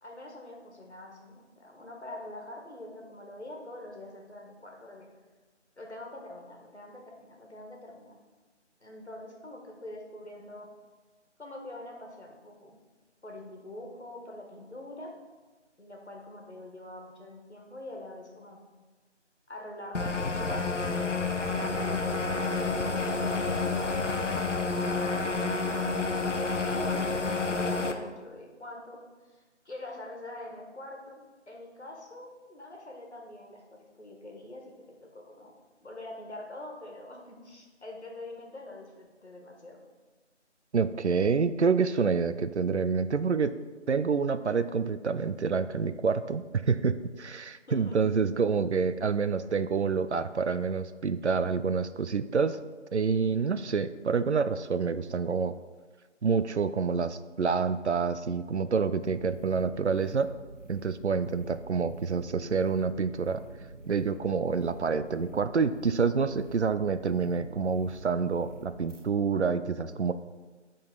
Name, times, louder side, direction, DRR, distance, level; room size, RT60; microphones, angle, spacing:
voice 1, 0.0-5.1 5.8-8.1 8.8-10.7 11.4-12.8 13.2-15.1 15.8-18.6 19.5-22.2 22.9-24.3 25.3-25.8 26.7-27.1 27.5-34.7 35.0-39.8 47.7-48.0, left 1 dB, 65° left, 0 dB, 1.6 m, -45 dB
sound 1, 19.9-27.9, left 3 dB, 85° left, 0.8 m, -29 dB
voice 2, 40.7-43.5 43.9-52.6 52.9-55.5 56.2-60.3 60.7-63.4 63.9-70.1, right 5 dB, 70° right, 12 dB, 0.5 m, -27 dB
sound 2, 59.0-69.0, right 2 dB, 85° right, 1.1 m, -47 dB
9.7 x 3.9 x 3.9 m, 1.3 s
figure-of-eight pair, 165°, 36 cm